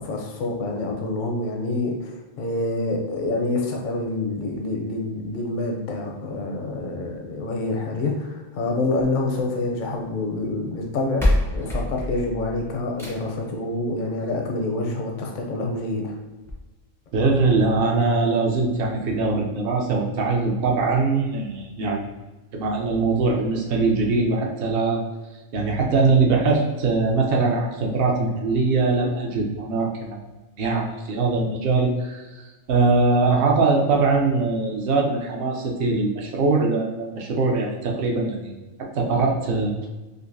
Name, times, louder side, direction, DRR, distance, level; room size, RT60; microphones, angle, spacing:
voice 1, 0.0-16.2, left 2 dB, 55° left, 1 dB, 0.6 m, -27 dB
sound 1, 8.8-10.0 10.8-10.9 11.2-13.5 14.8-14.9 15.4-15.5 15.7-15.8 16.4-16.5, left 1 dB, 5° left, 0.4 m, -26 dB
voice 2, 17.1-22.2 22.5-25.0 25.5-30.2 30.6-32.3 32.7-38.6 38.9-39.7, right 3 dB, 55° right, 0 dB, 0.7 m, -22 dB
3.8 x 2.7 x 2.6 m, 1.2 s
omnidirectional pair, 1.4 m